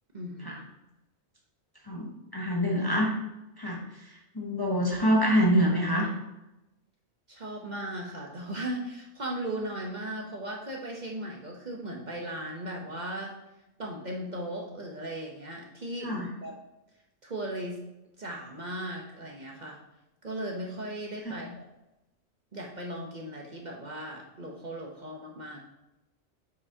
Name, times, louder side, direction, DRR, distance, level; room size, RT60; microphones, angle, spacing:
voice 1, 0.1-0.7 7.3-13.3 13.8-16.6 17.2-17.8 18.2-19.8 20.2-21.6 22.5-25.6, right 1 dB, 40° right, -1 dB, 0.9 m, -37 dB
voice 2, 1.9-3.1 3.6-3.8 4.3-6.1 16.0-16.3, equal, 20° left, -2 dB, 0.8 m, -25 dB
7.0 x 5.5 x 2.8 m, 0.93 s
omnidirectional pair, 1.2 m